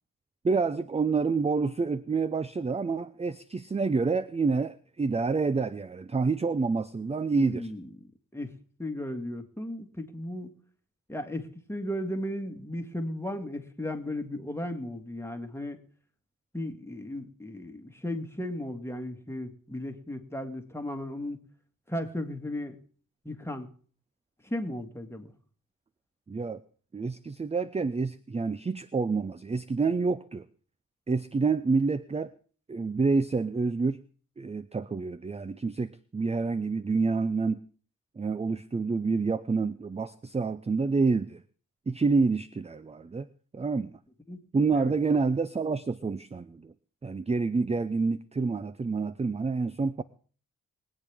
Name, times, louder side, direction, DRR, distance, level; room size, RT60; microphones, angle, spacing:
voice 1, 0.4-7.7 26.3-26.6 26.9-30.5 31.1-32.3 32.7-34.0 34.4-37.6 38.2-41.4 41.9-43.3 43.5-43.9 44.5-46.7 47.0-50.0, right 4 dB, 20° right, 15 dB, 0.5 m, -28 dB
voice 2, 7.3-7.9 8.3-8.5 8.8-10.6 11.1-15.8 16.5-21.4 21.9-22.8 23.2-23.7 24.4-25.3 44.3-44.9, left 1 dB, 5° left, 5 dB, 1.9 m, -35 dB
23.0 x 8.5 x 3.6 m, 0.43 s
cardioid pair, 60°, 34 cm